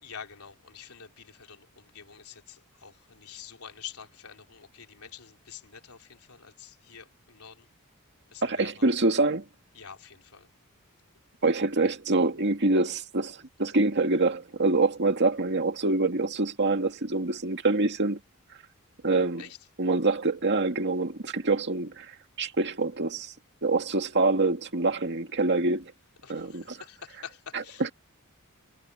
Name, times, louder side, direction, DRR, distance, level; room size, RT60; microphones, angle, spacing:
voice 1, 0.0-7.6 8.3-8.9 9.7-10.5 19.4-19.5 26.2-27.8, left 7 dB, 85° left, 3.3 m, -47 dB
voice 2, 8.4-9.4 11.4-18.2 19.0-19.5 19.8-22.1 22.4-23.3 23.6-25.9 26.3-26.8 27.5-27.9, right 3 dB, 55° right, 2.1 m, -25 dB
head